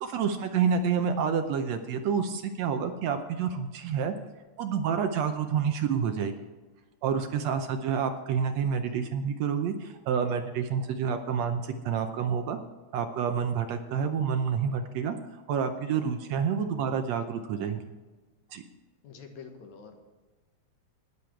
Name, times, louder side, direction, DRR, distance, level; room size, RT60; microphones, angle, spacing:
voice 1, 0.0-4.1 4.6-6.3 7.0-12.6 12.9-15.2 15.5-17.8 18.5-18.6, right 7 dB, 70° right, 7 dB, 1.8 m, -28 dB
voice 2, 19.0-20.0, left 5 dB, 70° left, 4 dB, 2.7 m, -46 dB
19.5 x 6.9 x 4.6 m, 1.3 s
omnidirectional pair, 3.5 m